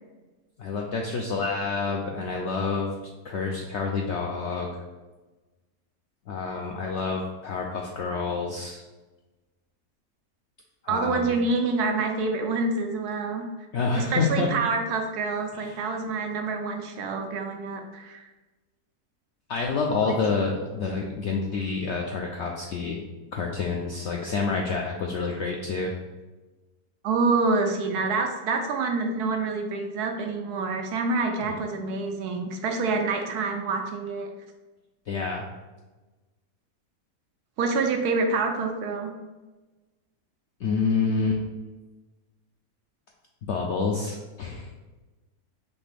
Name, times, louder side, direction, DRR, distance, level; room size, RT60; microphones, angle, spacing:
voice 1, 0.6-2.9 3.2-4.7 6.3-8.8 10.8-11.4 13.7-14.6 15.5-15.9 19.5-23.0 23.3-26.0 31.5-31.6 35.1-35.5 40.6-41.4 43.5-44.7, left 4 dB, 75° left, 0 dB, 0.6 m, -28 dB
voice 2, 10.9-13.5 14.0-18.2 20.0-20.2 27.0-34.3 37.6-39.1, right 3 dB, 80° right, 3 dB, 1.2 m, -27 dB
4.3 x 3.2 x 3.4 m, 1.2 s
omnidirectional pair, 1.7 m